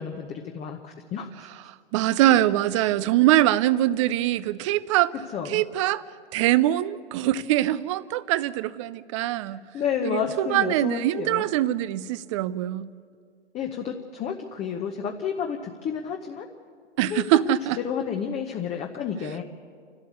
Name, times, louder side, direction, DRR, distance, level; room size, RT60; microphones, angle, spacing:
voice 1, 0.0-1.5 2.2-2.4 5.3-5.6 9.5-11.4 13.5-16.5 17.1-19.4, left 7 dB, 20° left, 0.9 m, -31 dB
voice 2, 1.9-5.1 5.5-6.0 6.3-9.6 10.0-12.9 17.0-17.8, right 14 dB, 30° right, 0.5 m, -23 dB
29.0 x 12.5 x 8.3 m
figure-of-eight pair, 120°, 35 cm